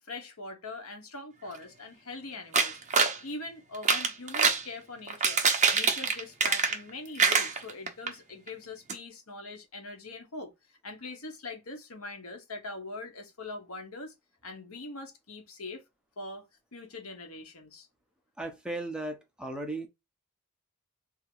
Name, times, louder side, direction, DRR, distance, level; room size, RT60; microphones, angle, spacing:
voice 1, 0.1-2.8 3.2-10.5 10.8-14.1 14.4-15.8 16.2-16.4 16.7-17.9, left 2 dB, 90° left, 1.3 m, -42 dB
sound 1, 2.5-3.2 3.7-4.6 5.1-6.9 7.2-8.1 8.5-8.6 8.9-9.0, right 5 dB, 35° right, 0.9 m, -25 dB
voice 2, 18.4-19.9, right 2 dB, 5° right, 0.9 m, -36 dB
3.7 x 2.9 x 4.6 m
head